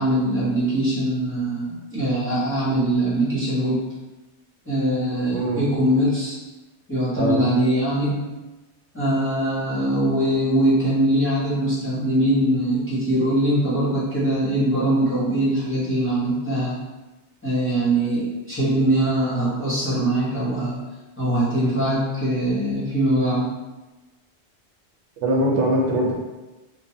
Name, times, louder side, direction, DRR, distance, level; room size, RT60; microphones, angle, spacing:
voice 1, 0.0-3.8 4.7-6.3 6.9-8.3 8.9-16.7 17.4-20.7 21.2-23.5, right 1 dB, 15° left, -9 dB, 0.7 m, -22 dB
voice 2, 5.3-5.6 7.2-7.5 25.2-26.1, right 1 dB, 85° right, -2 dB, 1.0 m, -21 dB
3.1 x 2.1 x 2.6 m, 1.1 s
omnidirectional pair, 1.2 m